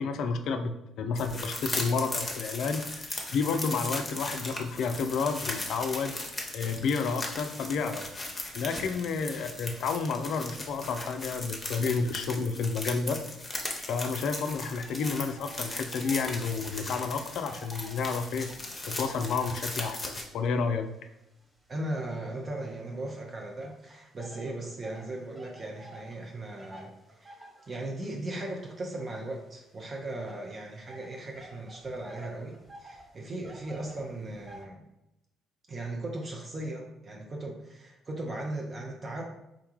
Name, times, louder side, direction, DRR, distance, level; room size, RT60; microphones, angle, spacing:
voice 1, 0.0-8.1 8.5-13.2 13.9-18.5 18.9-20.9, left 5 dB, 65° left, 7 dB, 0.3 m, -30 dB
sound 1, 1.2-20.2, left 2 dB, 25° left, 0.7 m, -38 dB
sound 2, 14.8-16.4 16.6-20.3 20.9-23.0 23.6-34.6, right 1 dB, 20° right, 1.0 m, -51 dB
voice 2, 21.7-26.9 27.2-34.8 35.7-39.2, right 2 dB, 40° right, 0 dB, 0.5 m, -37 dB
3.7 x 2.2 x 3.0 m, 0.88 s
hypercardioid pair, 50°, 0 cm